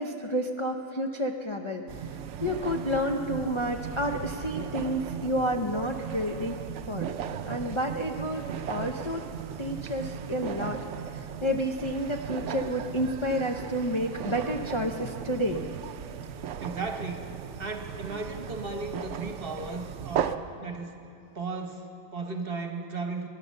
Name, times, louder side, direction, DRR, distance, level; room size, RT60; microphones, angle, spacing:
voice 1, 0.0-6.6 6.9-7.1 7.5-9.2 9.6-15.6, equal, 30° left, 1 dB, 0.6 m, -30 dB
sound 1, 1.9-20.4, right 8 dB, 65° right, 0.9 m, -37 dB
voice 2, 16.2-17.3 17.6-20.9 21.3-23.3, right 3 dB, 45° right, 4 dB, 1.3 m, -36 dB
19.0 x 11.0 x 6.5 m, 2.8 s
omnidirectional pair, 1.5 m